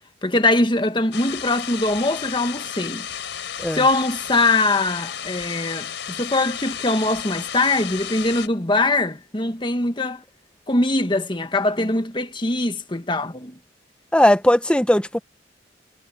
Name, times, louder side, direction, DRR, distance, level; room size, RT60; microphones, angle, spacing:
voice 1, 0.2-3.1 3.7-10.2 10.7-13.6, left 2 dB, 25° left, 1.5 m, -22 dB
sound 1, 1.1-8.5, left 8 dB, 85° left, 4.1 m, -33 dB
voice 2, 14.1-15.2, left 1 dB, 5° left, 0.9 m, -17 dB
head